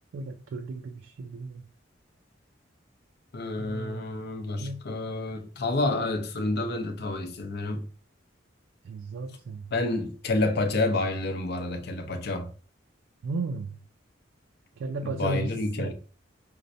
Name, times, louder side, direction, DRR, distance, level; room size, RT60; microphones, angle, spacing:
voice 1, 0.1-1.6 3.6-4.1 4.6-4.8 8.8-9.7 13.2-13.8 14.8-15.9, right 3 dB, 80° right, 0.3 m, -34 dB
voice 2, 3.3-7.9 9.7-12.5 15.0-15.9, left 2 dB, 60° left, 0.6 m, -29 dB
5.2 x 2.1 x 2.6 m
head